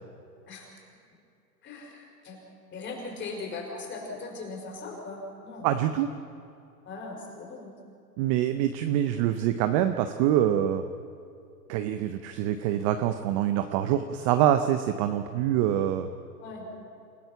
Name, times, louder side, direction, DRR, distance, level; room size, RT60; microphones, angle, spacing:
voice 1, 1.6-2.4 2.7-5.7 6.9-7.8 16.4-16.7, left 3 dB, 20° left, 0 dB, 5.3 m, -39 dB
voice 2, 5.6-6.1 8.2-10.8 11.7-16.1, right 11 dB, 20° right, 9 dB, 0.5 m, -25 dB
28.5 x 16.0 x 5.8 m, 2.5 s
hypercardioid pair, 120°, 50 cm